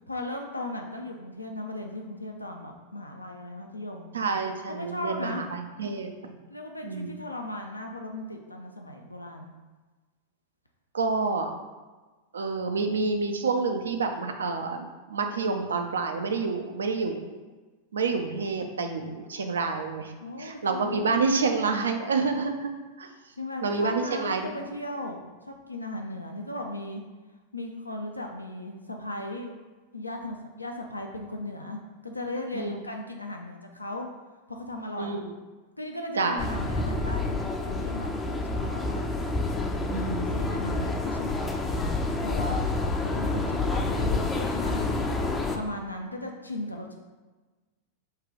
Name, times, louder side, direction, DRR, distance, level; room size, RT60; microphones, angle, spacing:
voice 1, 0.1-4.1 4.7-5.5 6.5-9.5 20.2-21.3 23.4-27.0 27.5-29.5 29.9-34.1 34.5-35.2 35.8-39.0 40.2-42.6 43.0-45.0 45.5-46.9, left 1 dB, 85° left, 2 dB, 0.4 m, -37 dB
voice 2, 4.1-6.4 6.8-7.1 10.9-11.5 12.3-17.3 17.9-20.1 20.4-22.7 23.0-23.1 23.6-24.5 32.5-32.7 35.0-35.3 36.2-36.4 39.9-40.8, right 4 dB, 70° right, 6 dB, 0.4 m, -28 dB
sound 1, 36.4-45.6, left 2 dB, 15° left, 0.4 m, -28 dB
5.4 x 2.3 x 3.7 m, 1.3 s
figure-of-eight pair, 90°, 0 cm